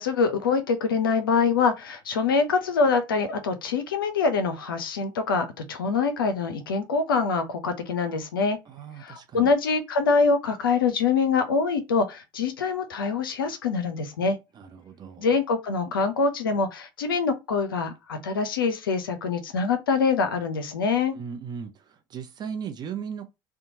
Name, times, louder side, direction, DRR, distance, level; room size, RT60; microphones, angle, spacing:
voice 1, 0.0-8.6 9.0-14.4 15.2-21.2, left 4 dB, 85° left, 0.5 m, -24 dB
voice 2, 8.7-9.5 14.5-15.3 21.1-23.3, right 7 dB, 40° right, 0.6 m, -37 dB
2.8 x 2.2 x 2.7 m
hypercardioid pair, 70°, 11 cm